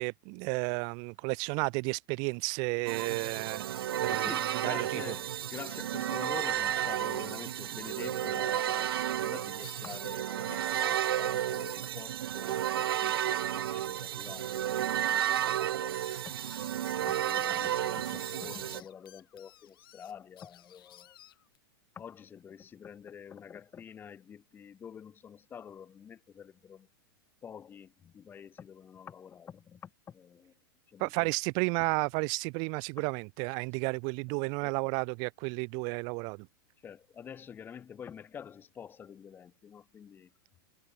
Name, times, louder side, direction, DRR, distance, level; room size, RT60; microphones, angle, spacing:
voice 1, 0.0-3.7 4.0-4.3 4.6-5.0 31.0-36.4, right 35 dB, 35° right, 0.4 m, -32 dB
sound 1, 2.9-18.8, right 11 dB, 85° right, 1.1 m, -32 dB
voice 2, 4.0-16.3 17.0-21.2 21.9-26.9 27.4-30.5 30.9-31.3 31.8-31.9 34.6-34.8 36.8-40.3, left 8 dB, 15° left, 1.5 m, -47 dB
sound 2, 9.4-11.4 11.7-11.8 12.1-12.2 12.4-21.6, left 12 dB, 75° left, 4.2 m, -57 dB
supercardioid pair, 150°, 12 cm